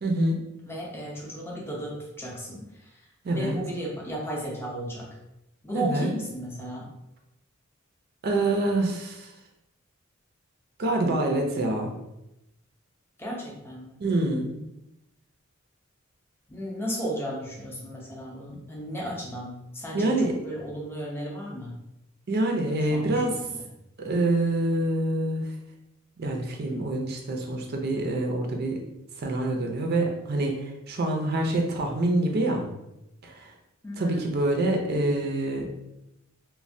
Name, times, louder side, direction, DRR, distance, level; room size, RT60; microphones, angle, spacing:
voice 1, 0.0-0.5 3.2-3.6 5.7-6.1 8.2-9.3 10.8-11.9 14.0-14.5 19.9-20.4 22.3-23.4 24.0-25.4 26.2-28.8 29.2-32.7 33.2-33.5 34.0-35.7, right 2 dB, 50° right, 2 dB, 0.4 m, -26 dB
voice 2, 0.7-5.1 5.6-6.9 13.2-14.0 16.5-21.7 22.9-23.6 31.1-31.2 33.8-34.3, equal, 10° left, -3 dB, 0.6 m, -35 dB
3.1 x 2.1 x 2.6 m, 0.88 s
head